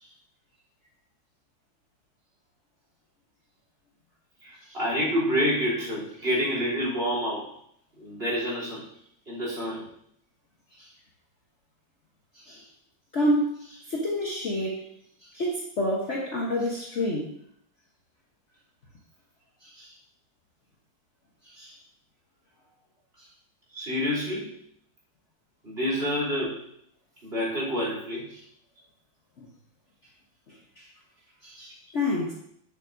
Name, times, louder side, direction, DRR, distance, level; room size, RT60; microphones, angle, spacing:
voice 1, 4.4-7.5 8.0-8.9 9.3-9.9 23.7-24.6 25.6-26.7 27.2-28.3, equal, 30° right, -6 dB, 3.4 m, -28 dB
voice 2, 13.1-14.8 15.3-17.3 19.6-19.9 21.5-21.7 29.4-29.5 30.8-30.9 31.4-32.3, left 1 dB, 45° left, -3 dB, 1.2 m, -28 dB
9.5 x 6.8 x 2.6 m, 0.68 s
omnidirectional pair, 2.0 m